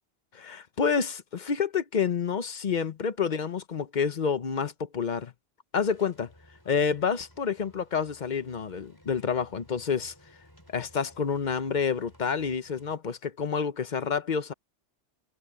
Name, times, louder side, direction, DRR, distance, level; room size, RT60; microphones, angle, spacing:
voice 1, 0.3-5.3 5.7-6.3 6.7-10.1 10.7-14.5, left 6 dB, 45° left, 0.9 m, -28 dB
sound 1, 5.8-13.0, equal, 15° left, 5.7 m, -58 dB
omnidirectional pair, 1.2 m